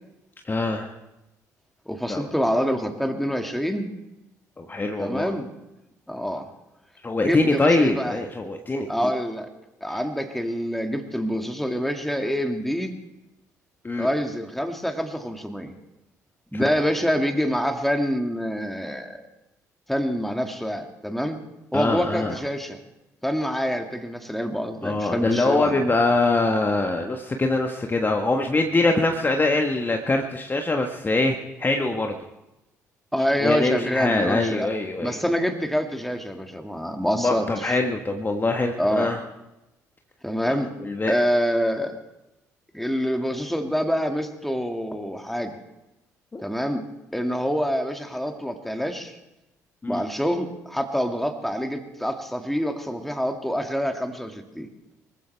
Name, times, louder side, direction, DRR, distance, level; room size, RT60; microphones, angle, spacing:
voice 1, 0.4-0.9 2.1-2.3 4.6-5.3 7.0-9.1 9.9-10.0 13.8-14.1 16.5-16.7 21.7-22.4 24.8-32.2 33.4-35.2 37.2-39.2 40.4-40.5 40.8-41.1 46.3-46.4 49.8-50.0, left 2 dB, 20° left, 4 dB, 1.4 m, -23 dB
voice 2, 1.9-3.9 5.0-5.5 6.1-6.5 7.2-8.1 8.9-9.5 9.8-12.9 14.0-15.7 16.5-19.2 19.9-21.4 21.7-22.8 23.2-25.8 33.1-34.7 35.0-37.8 38.8-39.1 40.2-40.7 41.1-42.0 42.7-45.5 46.4-46.8 47.1-49.2 49.9-54.7, equal, ahead, 5 dB, 2.1 m, -26 dB
24.5 x 15.0 x 3.4 m, 0.95 s
figure-of-eight pair, 50°, 9 cm